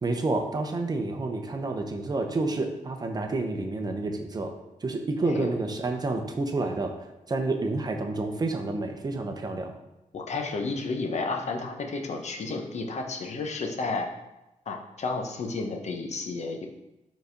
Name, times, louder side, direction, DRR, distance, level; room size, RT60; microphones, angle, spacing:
voice 1, 0.0-4.5 4.8-6.9 7.3-9.7, right 2 dB, 30° right, 4 dB, 0.7 m, -29 dB
voice 2, 10.1-14.1 14.7-16.7, left 3 dB, 55° left, 3 dB, 0.8 m, -32 dB
4.8 x 4.1 x 5.1 m, 0.96 s
wide cardioid pair, 120°, 14 cm